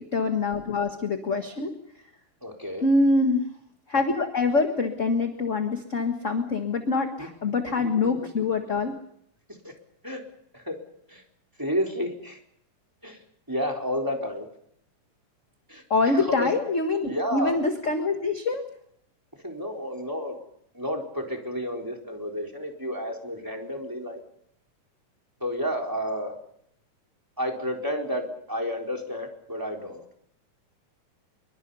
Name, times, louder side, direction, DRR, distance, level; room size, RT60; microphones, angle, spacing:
voice 1, 0.0-1.7 2.8-3.4 3.9-9.0 15.9-18.6, left 3 dB, 35° left, 5 dB, 1.4 m, -25 dB
voice 2, 2.4-2.9 7.2-7.3 9.6-9.7 10.0-10.2 10.5-10.8 11.1-11.2 11.6-12.4 13.0-13.2 13.5-14.5 15.7-15.8 16.1-16.5 17.0-17.6 19.4-20.4 20.7-24.2 25.4-26.3 27.4-30.0, equal, 5° right, 1 dB, 3.9 m, -31 dB
27.0 x 24.0 x 5.6 m, 0.71 s
omnidirectional pair, 3.6 m